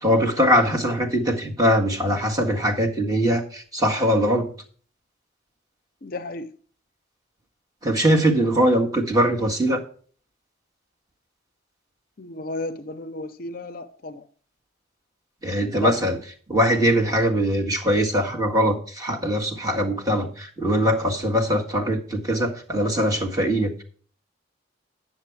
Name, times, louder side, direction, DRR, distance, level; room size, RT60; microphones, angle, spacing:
voice 1, 0.0-4.5 7.8-9.8 15.4-16.2 16.5-23.8, equal, 20° right, 1.6 m, -21 dB
voice 2, 6.0-6.5 12.2-14.3 15.7-15.9, left 2 dB, 45° left, 0.5 m, -33 dB
9.6 x 7.5 x 4.6 m
head